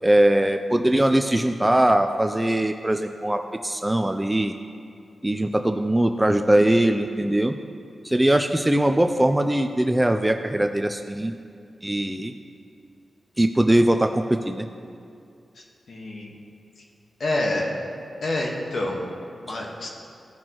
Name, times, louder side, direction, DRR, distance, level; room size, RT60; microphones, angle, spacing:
voice 1, 0.0-4.5 5.2-7.5 8.0-11.3 11.8-12.3 13.4-14.7 19.5-19.6, right 1 dB, 15° right, 6 dB, 0.4 m, -21 dB
voice 2, 15.9-16.3 17.2-17.7 18.2-19.1 19.4-19.9, left 1 dB, 70° left, -1 dB, 1.5 m, -27 dB
15.5 x 6.0 x 3.0 m, 2.4 s
cardioid pair, 70°, 0 cm